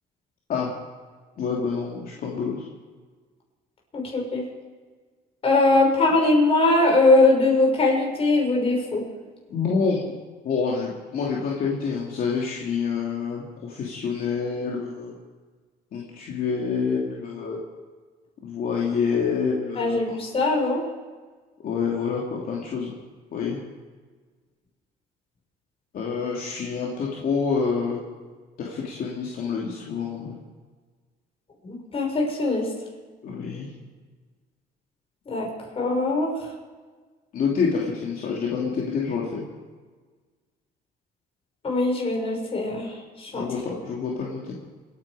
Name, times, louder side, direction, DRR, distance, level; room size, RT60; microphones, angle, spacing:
voice 1, 1.4-2.6 9.5-10.0 10.4-15.1 15.9-17.6 18.4-20.2 21.6-22.9 23.3-23.6 25.9-28.0 28.6-30.4 33.2-33.7 37.3-39.4 43.3-44.6, left 5 dB, 60° left, -4 dB, 2.9 m, -27 dB
voice 2, 3.9-4.4 5.4-9.0 19.8-20.8 31.6-32.7 35.3-35.5 35.8-36.3 41.6-43.5, left 2 dB, 35° left, 0 dB, 5.9 m, -21 dB
29.0 x 9.6 x 5.1 m, 1.4 s
cardioid pair, 110°, 17 cm